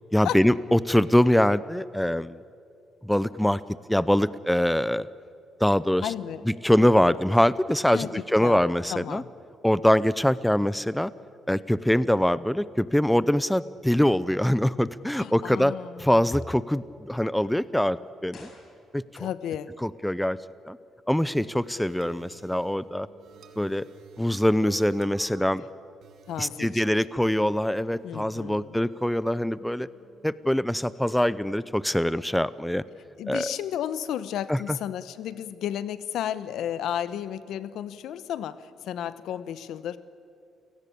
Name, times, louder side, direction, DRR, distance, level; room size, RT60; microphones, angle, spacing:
voice 1, 0.1-2.4 3.0-3.6 3.9-5.1 5.6-6.1 6.5-9.2 9.6-11.1 11.5-15.7 16.0-18.5 18.9-19.3 19.8-20.4 20.7-20.8 21.1-23.1 23.6-23.8 24.2-25.6 26.4-29.9 30.2-32.8 33.3-33.5 34.5-34.6, left 1 dB, 5° left, 17 dB, 0.6 m, -23 dB
voice 2, 6.0-6.4 7.9-8.1 8.4-8.6 8.9-9.3 15.1-16.4 19.2-19.7 26.3-26.8 28.0-28.8 33.2-40.0, left 10 dB, 80° left, 14 dB, 1.0 m, -33 dB
sound 1, 18.3-19.4 19.6-19.7, left 3 dB, 55° left, 5.3 m, -52 dB
sound 2, 21.6-30.2, right 6 dB, 70° right, 2.3 m, -51 dB
29.5 x 17.5 x 8.6 m, 2.5 s
cardioid pair, 90°, 0 cm